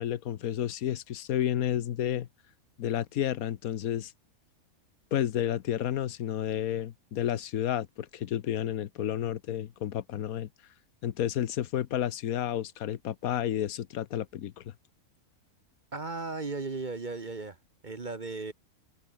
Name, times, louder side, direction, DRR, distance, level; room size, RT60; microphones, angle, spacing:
voice 1, 0.0-2.3 2.8-4.1 5.1-10.5 11.0-14.7, left 11 dB, 70° left, 1.2 m, -31 dB
voice 2, 15.9-17.6 17.8-18.5, right 3 dB, 35° right, 1.3 m, -36 dB
omnidirectional pair, 1.6 m